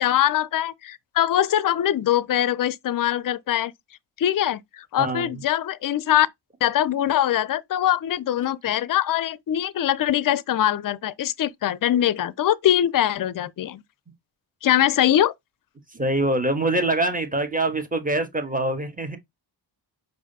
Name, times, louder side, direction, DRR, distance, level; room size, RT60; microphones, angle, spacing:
voice 1, 0.0-3.7 4.2-6.3 6.6-13.8 14.6-15.3, left 11 dB, 45° left, 0.5 m, -22 dB
voice 2, 5.0-5.3 15.9-19.2, right 2 dB, 15° right, 1.3 m, -24 dB
4.8 x 2.6 x 4.0 m
cardioid pair, 65°, 47 cm